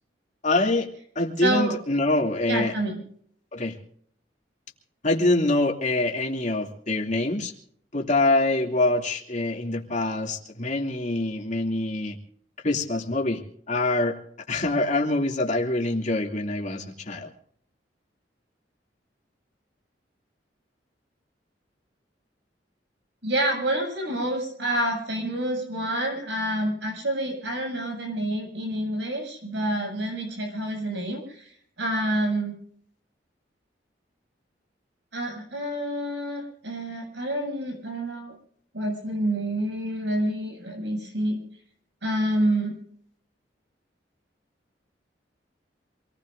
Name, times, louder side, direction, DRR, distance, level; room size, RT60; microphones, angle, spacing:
voice 1, 0.4-0.9 1.1-2.7 3.5-3.8 5.0-7.5 7.9-12.2 12.6-13.4 13.7-14.1 14.5-17.3, left 2 dB, 45° left, 1 dB, 2.8 m, -25 dB
voice 2, 1.4-1.7 2.5-3.0 23.2-31.5 31.8-32.5 35.1-38.4 38.7-41.4 42.0-42.7, right 1 dB, 75° right, 1 dB, 7.3 m, -28 dB
27.0 x 19.5 x 2.7 m, 0.62 s
head